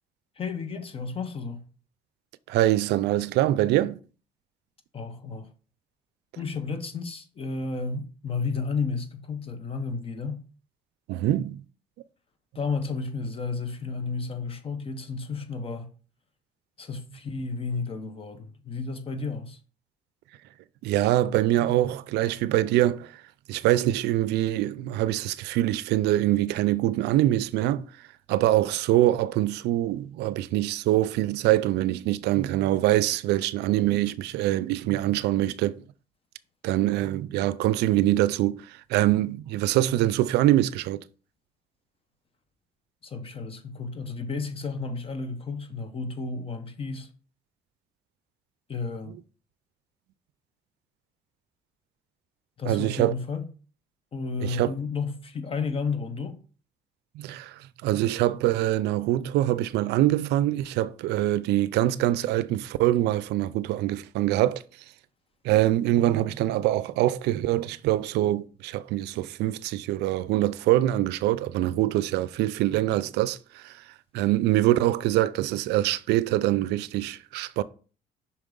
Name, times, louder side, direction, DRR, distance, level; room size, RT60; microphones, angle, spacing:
voice 1, 0.4-1.6 4.9-5.5 6.4-10.4 12.5-15.9 16.8-19.6 43.0-47.1 48.7-49.2 52.6-53.4 54.1-56.4, left 4 dB, 35° left, 0.8 m, -32 dB
voice 2, 2.5-4.0 11.1-11.6 20.8-23.2 23.5-27.8 28.3-35.8 36.6-41.0 52.7-53.1 54.4-54.7 57.2-64.6 65.4-73.8 74.1-77.6, right 14 dB, 80° right, 0.4 m, -24 dB
5.8 x 4.6 x 3.8 m
cardioid pair, 110°, 17 cm